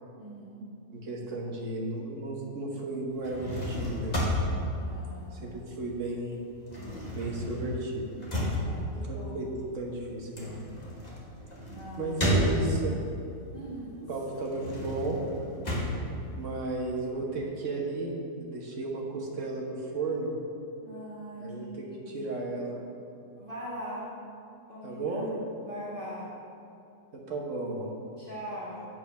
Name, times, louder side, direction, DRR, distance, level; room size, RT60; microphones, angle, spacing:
voice 1, 0.2-0.7 4.7-5.6 8.5-9.3 11.7-12.4 13.5-14.1 20.8-21.5 21.8-22.3 23.4-24.1 24.7-26.3 28.2-28.9, equal, 40° right, -9 dB, 1.8 m, -42 dB
voice 2, 0.9-4.2 5.3-6.4 7.1-8.2 9.0-9.5 9.7-10.6 12.0-12.9 14.1-15.2 16.4-18.1 18.4-20.3 21.4-22.8 24.8-25.3 27.1-27.9, right 2 dB, 65° right, 0 dB, 1.4 m, -34 dB
sound 1, 3.1-6.0 6.2-13.1 13.5-17.1, equal, 30° left, 1.5 m, -32 dB
8.4 x 4.6 x 5.7 m, 2.6 s
omnidirectional pair, 1.4 m